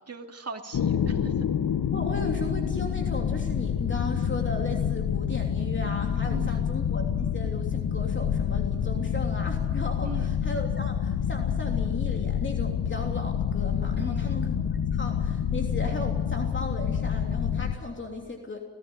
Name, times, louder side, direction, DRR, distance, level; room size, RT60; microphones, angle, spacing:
voice 1, 0.1-1.3 6.3-6.7 10.0-10.3 14.0-14.4, right 4 dB, 35° right, 3 dB, 2.5 m, -39 dB
sound 1, 0.7-17.7, left 8 dB, 55° left, 1.3 m, -27 dB
voice 2, 1.9-14.5 14.9-18.6, left 2 dB, 25° left, 2 dB, 3.1 m, -36 dB
18.5 x 16.5 x 9.8 m, 1.2 s
cardioid pair, 80°, 41 cm